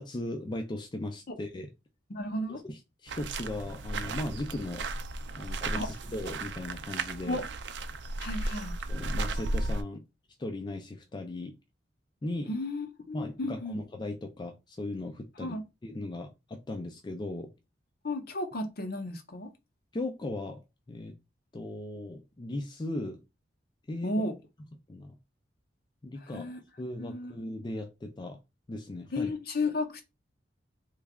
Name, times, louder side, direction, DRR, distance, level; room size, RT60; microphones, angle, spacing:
voice 1, 0.0-1.7 2.5-4.9 5.4-7.4 8.9-10.0 10.4-11.5 12.2-12.5 13.1-17.5 19.9-20.6 20.9-21.1 21.5-23.2 23.9-24.1 24.9-25.1 26.0-28.4 28.7-29.3, left 1 dB, 25° left, 0.4 m, -37 dB
voice 2, 2.1-2.6 5.8-5.9 7.3-7.4 8.2-8.7 12.5-13.8 15.4-15.6 18.0-19.5 24.0-24.4 26.3-26.6 27.0-27.3 29.1-30.0, left 2 dB, 55° left, 0.7 m, -33 dB
sound 1, 3.1-9.8, right 2 dB, 65° right, 0.4 m, -35 dB
3.2 x 2.3 x 3.5 m
head